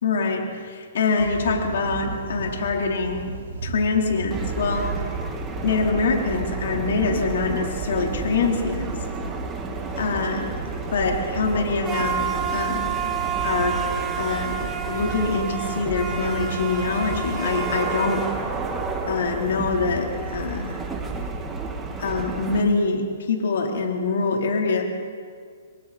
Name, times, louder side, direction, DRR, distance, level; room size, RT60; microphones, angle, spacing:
voice 1, 0.0-3.3 3.6-5.1 5.6-8.9 10.0-10.5 10.9-13.1 13.4-13.8 14.2-18.2 19.1-20.8 22.0-24.8, left 4 dB, 70° left, 0 dB, 4.1 m, -24 dB
sound 1, 1.2-20.8, right 4 dB, 65° right, 4.3 m, -36 dB
sound 2, 4.3-22.6, right 5 dB, 15° right, 1.9 m, -30 dB
30.0 x 22.5 x 4.4 m, 2.1 s
hypercardioid pair, 150°, 0 cm